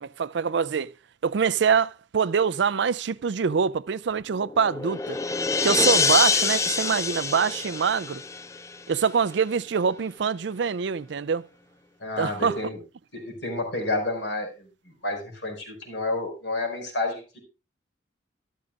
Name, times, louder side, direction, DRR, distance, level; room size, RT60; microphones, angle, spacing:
voice 1, 0.0-0.9 1.2-5.2 5.6-8.2 8.9-11.4 12.2-12.6, right 6 dB, 70° right, 0.4 m, -24 dB
sound 1, 4.3-8.9, left 4 dB, 15° left, 0.4 m, -25 dB
voice 2, 12.0-12.8 13.1-17.4, left 2 dB, 70° left, 5.3 m, -30 dB
14.0 x 12.5 x 2.4 m
head